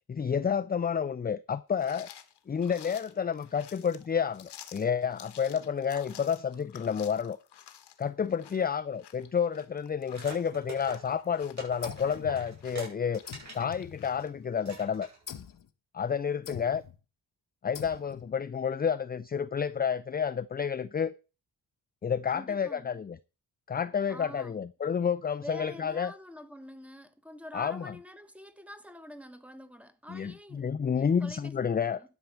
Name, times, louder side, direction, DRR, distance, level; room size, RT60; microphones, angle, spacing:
voice 1, 0.1-2.1 2.5-7.4 8.0-15.1 15.9-16.8 17.6-21.1 22.0-23.2 23.7-26.1 27.5-27.9 30.1-32.0, left 7 dB, 25° left, 0.4 m, -30 dB
sound 1, 1.8-14.3, left 10 dB, 85° left, 1.3 m, -52 dB
sound 2, 10.1-13.7 14.1-14.2 14.6-15.4, right 3 dB, 45° right, 6.5 m, -45 dB
sound 3, 11.8-12.9 13.3-14.6 15.3-15.7 16.5-17.0 17.8-18.4, left 9 dB, 55° left, 1.0 m, -45 dB
voice 2, 22.3-23.0 24.1-24.6 25.4-30.7 31.0-32.0, left 1 dB, 5° right, 1.2 m, -46 dB
11.5 x 4.7 x 7.2 m
wide cardioid pair, 105°, 40 cm